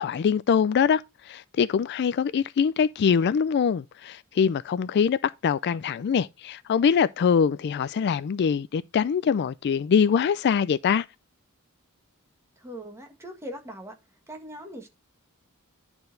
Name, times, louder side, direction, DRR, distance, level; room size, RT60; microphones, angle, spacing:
voice 1, 0.0-11.1, left 7 dB, 50° left, 0.3 m, -23 dB
voice 2, 12.6-14.0 14.3-14.9, equal, 10° right, 1.6 m, -40 dB
10.5 x 4.4 x 3.8 m
head